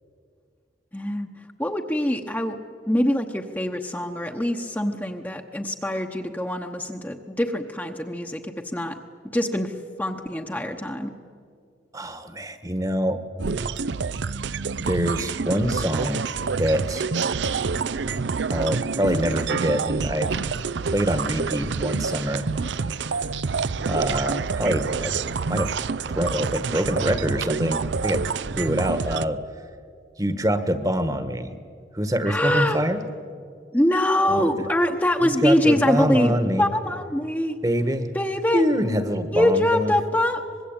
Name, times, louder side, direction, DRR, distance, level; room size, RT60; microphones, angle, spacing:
voice 1, 0.9-1.3 1.6-2.6 2.9-8.9 9.3-9.7 10.0-11.1 32.3-32.8 33.7-37.6 38.1-38.6 39.3-40.4, left 1 dB, 10° left, 3 dB, 1.0 m, -24 dB
voice 2, 11.9-13.2 14.9-16.2 16.6-17.0 18.5-20.3 20.9-22.4 23.1-23.3 23.7-25.1 25.5-25.7 26.1-28.2 28.6-29.4 30.2-31.5 31.9-33.0 34.3-34.4 35.2-36.7 37.6-38.1 38.5-39.9, equal, 20° right, 11 dB, 1.3 m, -25 dB
sound 1, 13.4-29.3, right 5 dB, 80° right, 0.5 m, -27 dB
25.0 x 21.5 x 8.9 m, 2.2 s
head